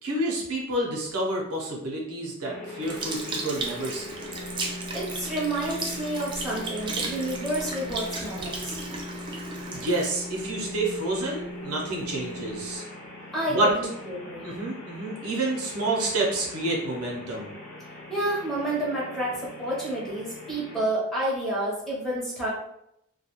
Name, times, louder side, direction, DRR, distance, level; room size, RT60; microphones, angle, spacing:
voice 1, 0.0-4.2 9.7-12.8 13.5-13.7 14.4-17.5, right 2 dB, 85° right, -2 dB, 0.7 m, -29 dB
sound 1, 2.4-20.8, left 2 dB, 30° left, 1.0 m, -40 dB
Sink (filling or washing) / Liquid, 2.8-11.4 12.0-12.1, right 3 dB, 20° right, 0.3 m, -36 dB
voice 2, 4.9-8.7 13.3-13.7 14.1-14.5 18.1-22.5, right 1 dB, ahead, -8 dB, 0.8 m, -29 dB
2.3 x 2.2 x 2.9 m, 0.78 s
head